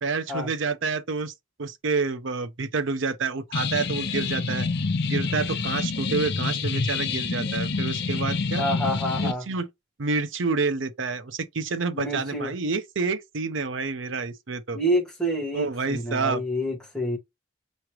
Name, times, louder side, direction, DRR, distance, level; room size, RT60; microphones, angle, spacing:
voice 1, 0.0-1.3 1.6-4.7 5.0-8.6 9.2-9.7 10.0-14.8 15.5-16.4, right 4 dB, 75° right, 0.7 m, -28 dB
sound 1, 3.5-9.3, left 4 dB, 55° left, 0.6 m, -27 dB
voice 2, 8.6-9.5 11.9-12.5 14.7-17.2, equal, 5° left, 1.5 m, -28 dB
4.8 x 3.2 x 3.0 m
head